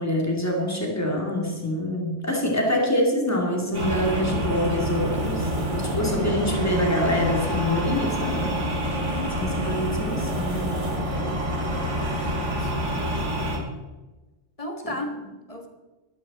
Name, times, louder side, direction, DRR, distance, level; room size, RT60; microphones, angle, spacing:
voice 1, 0.0-8.6 9.4-10.9 14.8-14.9, left 1 dB, 15° left, 0 dB, 2.4 m, -26 dB
voice 2, 2.5-2.9 9.0-9.3 11.7-11.8 12.1-12.3 12.6-13.3 14.6-15.7, left 1 dB, 30° left, 4 dB, 1.6 m, -36 dB
sound 1, 3.7-13.6, equal, 80° right, 2.5 m, -27 dB
13.5 x 12.5 x 4.2 m, 1.2 s
omnidirectional pair, 1.2 m